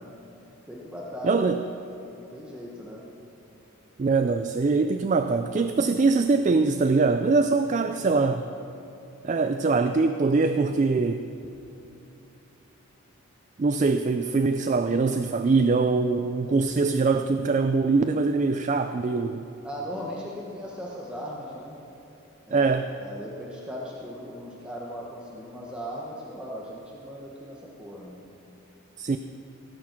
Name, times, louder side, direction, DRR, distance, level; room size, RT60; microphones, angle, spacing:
voice 1, 0.7-1.5 2.1-3.0 19.6-21.8 22.5-28.2, equal, 5° right, -5 dB, 1.2 m, -38 dB
voice 2, 1.2-1.6 4.0-8.5 9.2-11.2 13.6-19.4 22.5-22.9 29.0-29.2, right 4 dB, 35° right, 8 dB, 0.3 m, -23 dB
17.5 x 8.5 x 5.9 m, 2.9 s
head